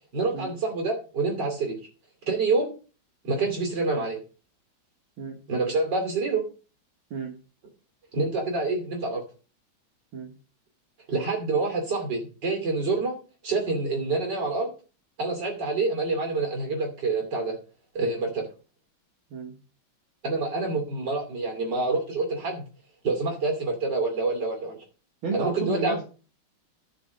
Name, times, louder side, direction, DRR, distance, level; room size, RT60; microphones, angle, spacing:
voice 1, 0.1-1.8 2.3-2.7 3.2-4.2 5.5-6.4 8.1-9.2 11.1-13.2 13.4-14.7 15.2-17.6 18.0-18.5 20.2-22.6 23.0-24.8 25.3-26.0, right 3 dB, 60° right, 3 dB, 3.3 m, -27 dB
voice 2, 25.2-26.0, right 4 dB, 85° right, 1 dB, 2.5 m, -32 dB
12.0 x 6.3 x 5.3 m, 0.36 s
omnidirectional pair, 2.2 m